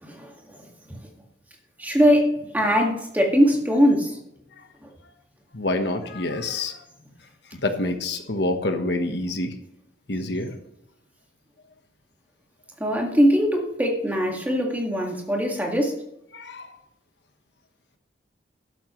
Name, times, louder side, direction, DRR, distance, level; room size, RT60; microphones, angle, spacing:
voice 1, 0.0-1.0 1.8-4.2 4.8-4.9 12.8-15.9, equal, 10° right, 0 dB, 1.9 m, -22 dB
voice 2, 5.5-6.8 7.6-9.5 10.1-10.5 16.3-16.7, left 2 dB, 65° left, 6 dB, 1.2 m, -27 dB
13.0 x 11.5 x 3.2 m, 0.83 s
head